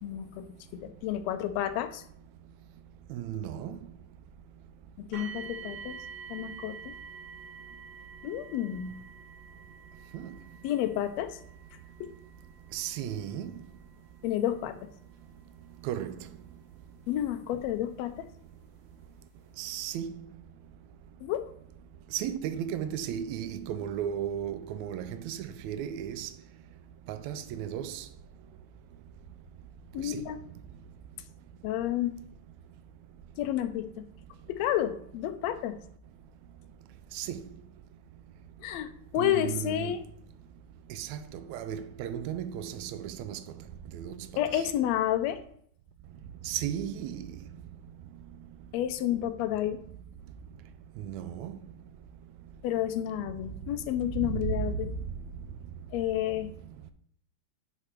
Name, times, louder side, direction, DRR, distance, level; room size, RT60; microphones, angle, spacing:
voice 1, 0.0-0.5 0.8-2.0 5.0-6.0 6.3-6.9 8.2-8.9 10.6-11.4 12.0-12.1 14.2-14.9 17.1-18.2 21.2-21.5 29.9-30.4 31.6-32.2 33.4-34.0 34.5-35.8 38.6-40.0 44.4-45.4 48.7-49.8 52.6-54.9 55.9-56.5, left 12 dB, 75° left, 1.6 m, -30 dB
voice 2, 3.1-3.8 10.1-10.3 12.7-13.5 15.8-16.2 19.6-20.1 22.1-26.3 27.1-28.0 30.0-30.2 37.1-37.4 39.2-40.0 40.9-43.4 43.9-44.1 44.5-44.6 46.4-47.2 51.0-51.6 54.2-54.6, right 9 dB, 80° right, 1.7 m, -35 dB
sound 1, 5.1-18.0 18.8-18.9 19.5-19.6, right 6 dB, 50° right, 1.1 m, -48 dB
10.0 x 4.0 x 4.5 m
omnidirectional pair, 3.6 m